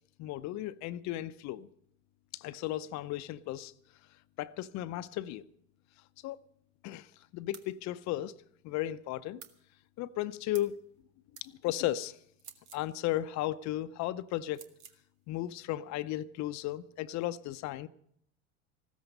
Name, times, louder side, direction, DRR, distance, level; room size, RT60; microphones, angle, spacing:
voice 1, 0.2-1.7 2.3-3.7 4.4-5.4 6.2-6.4 6.8-7.1 7.3-8.3 8.6-9.4 10.0-10.7 11.4-12.2 12.7-14.6 15.3-17.9, left 14 dB, 55° left, 0.7 m, -35 dB
sound 1, 7.5-7.7 9.4-9.6 10.5-10.8 11.3-11.5 12.4-12.9 14.5-15.0, right 7 dB, 80° right, 1.3 m, -51 dB
15.0 x 13.5 x 5.4 m
hypercardioid pair, 80°, 34 cm